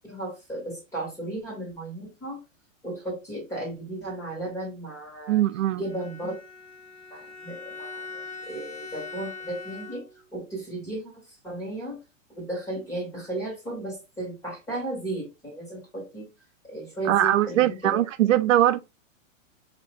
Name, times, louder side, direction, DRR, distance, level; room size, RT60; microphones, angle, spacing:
voice 1, 0.0-2.4 2.8-5.4 5.7-6.4 7.1-10.0 10.3-12.0 12.3-16.3 16.6-18.0, right 2 dB, 5° left, 1.9 m, -35 dB
voice 2, 5.3-5.8 17.1-18.8, right 13 dB, 75° right, 0.5 m, -21 dB
Bowed string instrument, 5.8-10.3, left 4 dB, 25° left, 1.4 m, -41 dB
4.9 x 3.0 x 3.1 m
hypercardioid pair, 170°, 39 cm